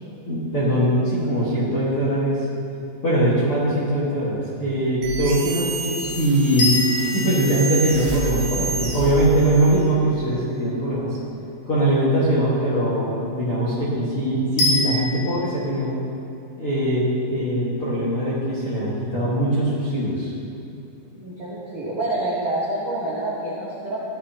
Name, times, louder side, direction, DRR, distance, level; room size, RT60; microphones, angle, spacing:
voice 1, 0.2-2.4 3.0-6.8 7.1-11.2 11.7-15.9 16.6-20.3, right 1 dB, 55° left, -9 dB, 1.5 m, -21 dB
sound 1, 5.0-9.9, right 4 dB, 65° right, 2.1 m, -29 dB
sound 2, 6.6-8.7 14.6-15.3, left 2 dB, 75° left, 4.6 m, -25 dB
voice 2, 21.1-24.0, right 1 dB, 85° right, -7 dB, 1.5 m, -27 dB
15.0 x 11.5 x 2.9 m, 2.7 s
omnidirectional pair, 5.5 m